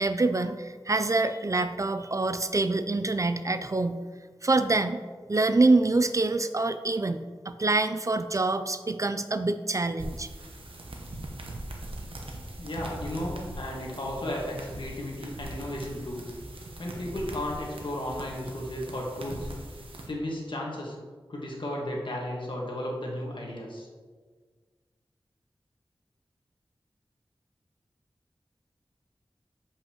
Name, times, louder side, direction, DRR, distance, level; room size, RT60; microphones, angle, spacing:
voice 1, 0.0-4.0 4.4-5.0 5.3-10.3, right 2 dB, 35° right, 10 dB, 0.4 m, -26 dB
sound 1, 10.0-20.1, right 1 dB, 85° right, 1.0 m, -41 dB
voice 2, 12.6-16.2 16.8-19.5 20.1-20.9 21.3-23.9, left 1 dB, 65° left, -2 dB, 1.5 m, -34 dB
7.4 x 5.3 x 3.0 m, 1.5 s
cardioid pair, 45°, 9 cm